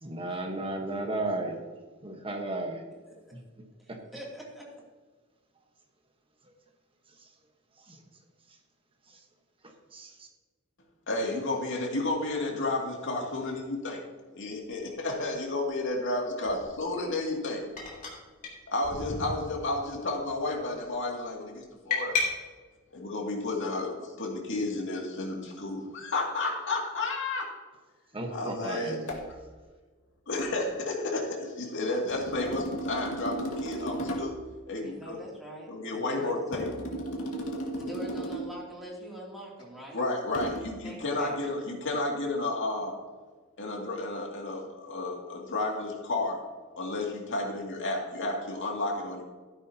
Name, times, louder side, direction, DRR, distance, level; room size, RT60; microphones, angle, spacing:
voice 1, 0.0-1.6 2.0-2.8 3.9-4.0 7.9-8.0 9.1-9.2 9.9-10.3 28.1-29.0, right 2 dB, 25° right, 3 dB, 1.2 m, -34 dB
voice 2, 4.1-4.7 34.7-36.4 37.7-40.0 40.8-41.4, right 1 dB, ahead, -5 dB, 2.7 m, -43 dB
voice 3, 11.1-14.0 14.3-17.6 18.7-22.1 22.9-27.5 28.3-29.0 30.3-31.3 31.6-34.3 34.7-35.2 35.7-36.7 39.9-42.9 43.6-46.4 46.8-49.2, left 2 dB, 60° left, -1 dB, 2.4 m, -32 dB
sound 1, 14.7-14.8 16.4-16.7 17.8-18.2 18.4-18.5 18.8-19.7 20.1-20.5 21.9-22.3, left 4 dB, 35° left, 2.9 m, -32 dB
sound 2, 29.1-29.3 30.4-30.6 32.1-34.4 36.5-38.6 40.3-40.6, right 1 dB, 80° left, 2.0 m, -35 dB
13.0 x 10.5 x 2.9 m, 1.4 s
head